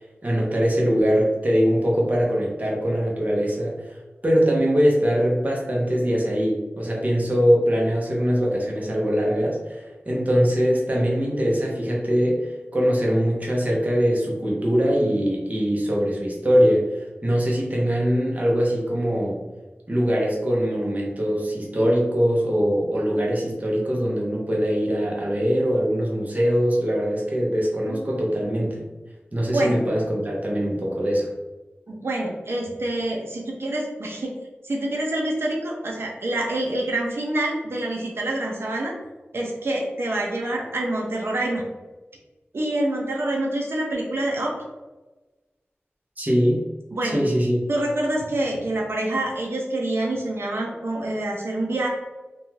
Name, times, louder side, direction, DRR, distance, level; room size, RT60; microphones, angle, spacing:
voice 1, 0.2-4.0 4.2-19.4 19.9-28.8 29.3-31.3 46.2-46.6 47.0-47.6, equal, 40° right, -3 dB, 0.8 m, -22 dB
voice 2, 31.9-34.3 34.6-38.9 39.3-41.6 42.5-44.6 46.9-47.2 47.7-51.9, right 1 dB, 75° right, -1 dB, 0.5 m, -26 dB
2.6 x 2.2 x 3.1 m, 1.2 s
wide cardioid pair, 65°, 4 cm